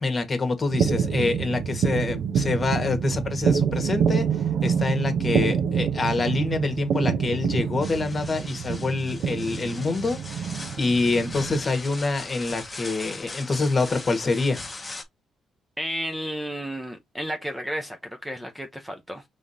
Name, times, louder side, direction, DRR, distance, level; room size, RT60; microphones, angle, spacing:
voice 1, 0.0-4.3 4.6-10.5 10.8-14.6, left 3 dB, 30° left, 1.5 m, -26 dB
sound 1, 0.7-11.6, right 7 dB, 70° right, 0.7 m, -26 dB
sound 2, 7.8-15.0, left 2 dB, 15° left, 1.1 m, -40 dB
voice 2, 15.8-19.2, equal, 5° right, 0.8 m, -32 dB
5.0 x 3.7 x 2.7 m
cardioid pair, 90°, 0 cm